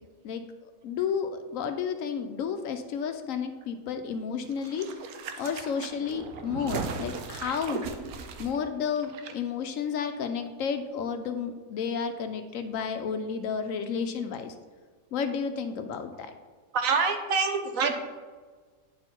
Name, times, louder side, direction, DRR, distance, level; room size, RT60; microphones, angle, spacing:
voice 1, 0.2-4.9 5.4-7.9 8.4-14.5 15.1-16.3, left 6 dB, 70° left, 8 dB, 0.9 m, -32 dB
sound 1, 4.5-9.3 9.6-9.7, right 5 dB, 90° right, 1.2 m, -38 dB
voice 2, 16.7-17.9, right 5 dB, 70° right, 6 dB, 1.2 m, -25 dB
9.4 x 4.4 x 4.4 m, 1.4 s
omnidirectional pair, 1.5 m